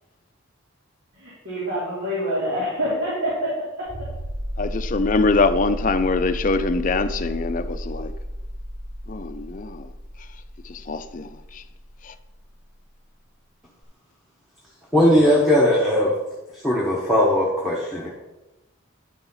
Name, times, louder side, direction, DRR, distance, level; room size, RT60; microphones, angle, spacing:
voice 1, 1.1-3.9, equal, 85° right, 2.9 m, -26 dB
sound 1, 3.9-12.3 13.8-13.9, equal, 20° right, 0.6 m, -32 dB
voice 2, 4.6-8.1 9.1-9.9 10.6-11.6 12.0-12.1, left 3 dB, 40° left, 0.4 m, -24 dB
voice 3, 14.9-16.1 16.6-18.1, left 1 dB, ahead, 1.0 m, -18 dB
9.9 x 4.1 x 5.5 m
head